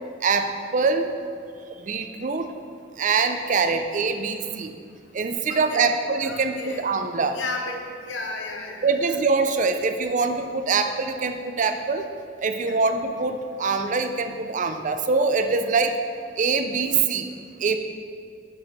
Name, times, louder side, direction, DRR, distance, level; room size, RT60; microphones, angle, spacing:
voice 1, 0.2-1.1 1.8-2.5 3.0-4.7 5.1-7.4 8.8-12.0 12.4-16.0 16.4-17.3 17.6-17.8, right 4 dB, 40° right, 7 dB, 0.5 m, -24 dB
voice 2, 5.5-5.9 6.2-6.8 7.3-8.9 12.6-12.8, left 3 dB, 75° left, 1 dB, 1.1 m, -33 dB
6.6 x 6.2 x 5.4 m, 2.3 s
head